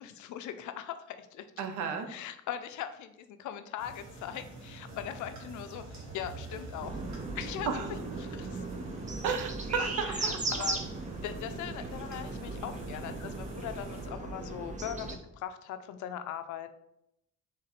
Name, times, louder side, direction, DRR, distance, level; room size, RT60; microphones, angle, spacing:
voice 1, 0.0-1.5 2.1-7.0 7.3-7.8 8.2-8.6 9.8-10.8 11.2-16.7, left 10 dB, 75° left, 10 dB, 0.5 m, -40 dB
voice 2, 1.6-2.1 7.7-7.8 9.2-10.4, right 6 dB, 80° right, 7 dB, 0.6 m, -32 dB
sound 1, 3.8-14.1, right 3 dB, 65° right, 1.3 m, -46 dB
sound 2, 6.8-15.2, right 3 dB, 25° right, 0.6 m, -37 dB
3.7 x 2.6 x 4.1 m, 0.81 s
cardioid pair, 90°, 30 cm